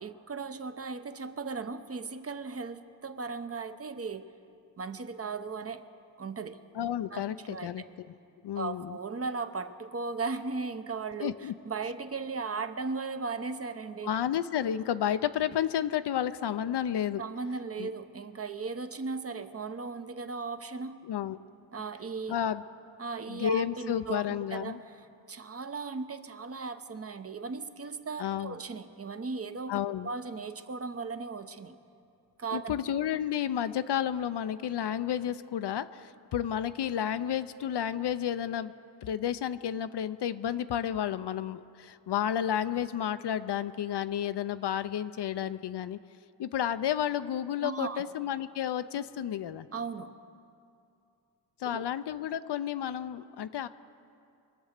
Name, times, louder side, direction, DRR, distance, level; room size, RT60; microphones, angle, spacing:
voice 1, 0.0-4.3 4.8-5.9 6.2-6.6 7.1-7.8 8.5-14.1 17.2-21.1 21.7-22.4 23.0-24.2 24.5-31.8 32.4-32.7 47.6-48.0 49.7-50.2 51.6-51.8, right 4 dB, 35° right, 10 dB, 0.7 m, -37 dB
voice 2, 6.7-8.1 8.4-9.0 11.2-11.5 14.0-17.2 17.8-17.9 21.0-21.4 22.3-22.6 23.3-24.8 28.2-28.5 29.7-30.1 32.5-38.7 39.0-46.0 46.4-49.7 51.6-53.7, left 10 dB, 65° left, 12 dB, 0.6 m, -31 dB
24.0 x 8.1 x 6.6 m, 2.5 s
cardioid pair, 85°, 43 cm